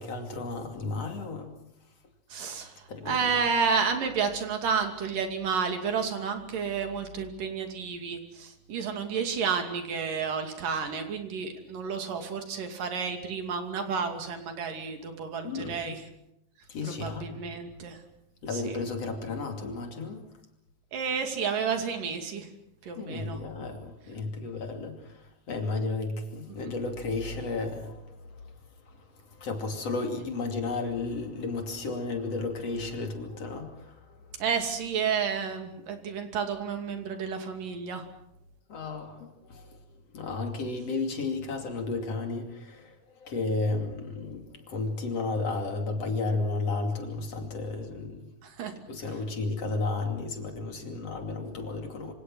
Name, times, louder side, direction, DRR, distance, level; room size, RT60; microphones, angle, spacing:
voice 1, 0.0-1.5 2.9-3.4 15.4-16.0 16.7-17.6 18.4-20.3 23.0-28.6 28.9-34.3 38.7-39.8 40.1-48.3 48.9-52.1, left 3 dB, 50° left, 4 dB, 3.6 m, -33 dB
voice 2, 2.3-2.7 3.1-16.0 16.8-18.0 18.5-18.8 20.9-22.5 22.8-23.4 26.5-26.7 34.4-38.0 48.4-48.7, right 6 dB, 80° right, 5 dB, 4.3 m, -31 dB
26.5 x 25.5 x 6.3 m, 0.81 s
omnidirectional pair, 3.8 m